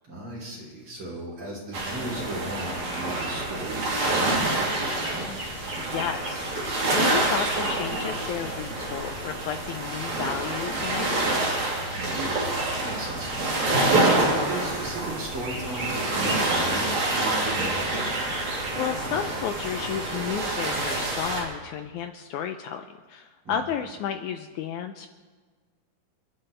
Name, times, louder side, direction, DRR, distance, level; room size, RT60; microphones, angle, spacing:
voice 1, 0.0-5.3 11.9-18.3 23.4-23.6, right 1 dB, 40° right, -4 dB, 4.3 m, -36 dB
sound 1, 1.7-21.4, right 2 dB, 60° right, 4.5 m, -27 dB
voice 2, 5.8-6.7 6.9-11.6 18.8-25.1, left 8 dB, 80° left, 7 dB, 1.9 m, -32 dB
29.5 x 11.5 x 3.3 m, 1.5 s
omnidirectional pair, 3.9 m